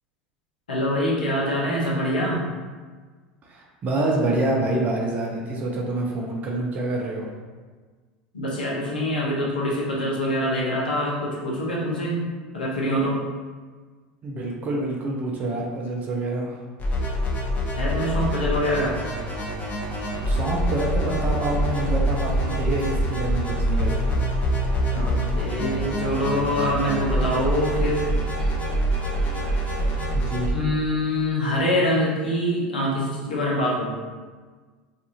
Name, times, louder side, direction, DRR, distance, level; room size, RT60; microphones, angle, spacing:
voice 1, 0.7-2.4 8.3-12.2 12.5-13.2 17.7-19.0 24.9-28.1 28.4-28.5 30.5-33.9, equal, 90° left, -5 dB, 0.7 m, -24 dB
voice 2, 3.5-7.3 14.2-16.6 20.3-24.3 30.1-30.5, right 2 dB, 35° right, -2 dB, 0.5 m, -27 dB
sound 1, 16.8-30.5, right 1 dB, 30° left, 0.8 m, -25 dB
sound 2, 18.3-30.1, left 1 dB, 60° left, 1.3 m, -42 dB
2.5 x 2.4 x 2.7 m, 1.4 s
hypercardioid pair, 85°, 5 cm